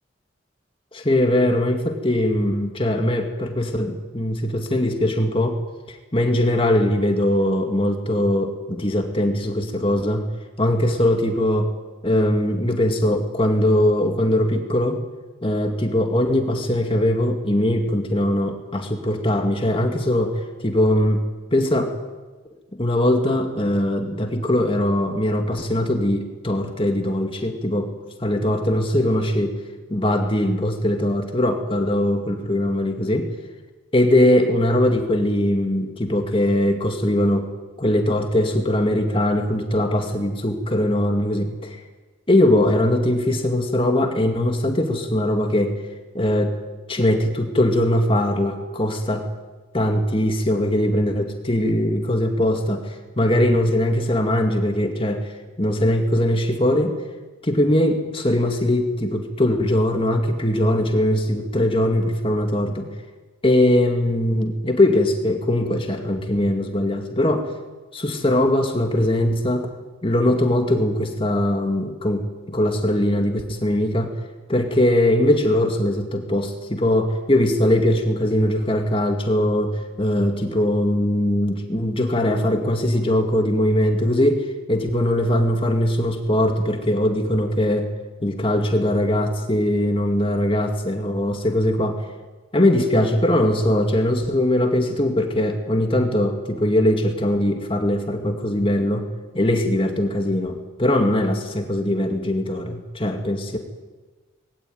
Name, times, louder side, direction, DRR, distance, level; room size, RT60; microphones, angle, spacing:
voice 1, 0.9-5.6 5.9-10.3 10.6-11.7 12.0-15.0 15.4-21.2 21.5-22.0 22.7-27.9 28.2-29.6 29.9-33.3 33.9-37.5 37.8-41.8 42.3-45.8 46.1-46.6 46.9-49.3 49.7-57.0 57.4-62.9 63.4-67.5 67.9-69.7 70.0-74.2 74.5-87.9 88.2-92.1 92.5-99.1 99.3-103.6, left 1 dB, 25° left, 4 dB, 2.3 m, -21 dB
25.5 x 20.5 x 9.4 m, 1.3 s
head